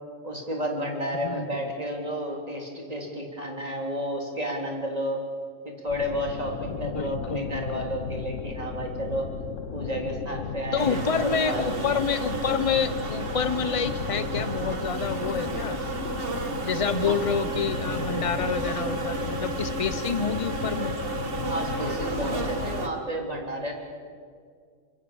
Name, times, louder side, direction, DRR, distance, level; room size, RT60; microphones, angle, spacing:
voice 1, 0.2-5.2 5.8-9.3 9.7-11.9 17.0-17.2 21.4-23.7, equal, 30° right, 0 dB, 3.8 m, -31 dB
sound 1, 5.9-22.9, left 6 dB, 90° left, 1.3 m, -35 dB
voice 2, 6.8-7.8 10.7-15.8 16.6-20.9, left 6 dB, 30° left, 12 dB, 1.0 m, -28 dB
sound 2, 10.8-22.9, right 3 dB, 50° right, 2.0 m, -33 dB
25.0 x 23.5 x 7.2 m, 2.1 s
omnidirectional pair, 1.3 m